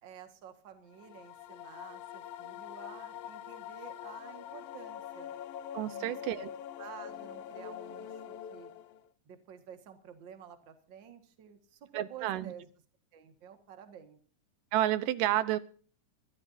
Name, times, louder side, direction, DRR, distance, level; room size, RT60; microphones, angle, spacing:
voice 1, 0.0-5.3 5.9-6.4 6.8-8.2 8.5-8.7 9.3-12.7 13.1-14.2, right 8 dB, 45° right, 7 dB, 2.0 m, -51 dB
Minimoog reverberated ghostly analog chorus, 0.9-9.1, left 10 dB, 85° left, 1.3 m, -44 dB
voice 2, 5.7-6.5 11.9-12.5 14.7-15.6, right 13 dB, 90° right, 14 dB, 2.5 m, -30 dB
23.0 x 13.5 x 2.7 m, 0.43 s
omnidirectional pair, 3.7 m